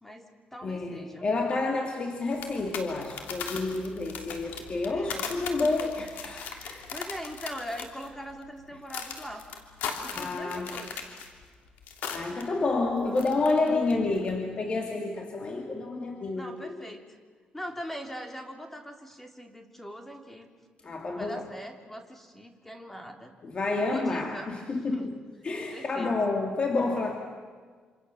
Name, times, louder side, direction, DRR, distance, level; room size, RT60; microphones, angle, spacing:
voice 1, 0.0-1.3 4.8-5.4 6.9-9.4 10.0-11.0 13.6-14.0 16.3-17.1 17.5-20.5 21.1-23.3 23.8-25.1 25.7-26.2, equal, 10° left, 4 dB, 3.1 m, -41 dB
voice 2, 0.6-6.9 10.1-10.8 12.1-16.8 20.8-21.5 23.4-25.1 25.4-27.1, left 3 dB, 40° left, 2 dB, 2.7 m, -29 dB
sound 1, 2.3-12.4 12.7-13.9 14.2-14.4, left 6 dB, 90° left, 3.1 m, -39 dB
27.0 x 26.5 x 7.1 m, 1.6 s
cardioid pair, 100°, 3 cm